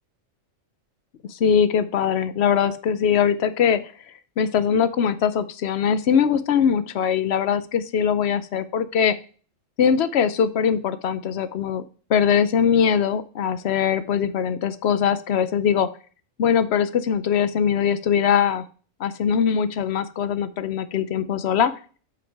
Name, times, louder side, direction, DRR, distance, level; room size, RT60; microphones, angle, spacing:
voice 1, 1.2-3.9 4.4-9.2 9.8-11.8 12.1-15.9 16.4-18.6 19.0-21.7, left 7 dB, 60° left, 13 dB, 0.8 m, -21 dB
7.2 x 5.9 x 3.4 m, 0.39 s
omnidirectional pair, 1.4 m